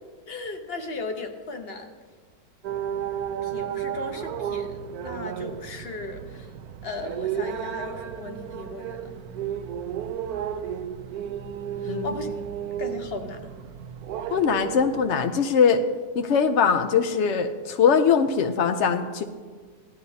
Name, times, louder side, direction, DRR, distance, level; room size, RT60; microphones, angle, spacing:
voice 1, 0.3-1.9 3.4-6.5 6.8-9.1 11.8-12.3 12.8-13.5, left 3 dB, 40° left, 5 dB, 1.1 m, -36 dB
sound 1, 2.6-15.1, right 9 dB, 70° right, 0.9 m, -33 dB
voice 2, 14.3-15.8 16.1-19.2, left 6 dB, 80° left, 7 dB, 0.6 m, -21 dB
17.5 x 12.0 x 2.8 m, 1.5 s
omnidirectional pair, 1.9 m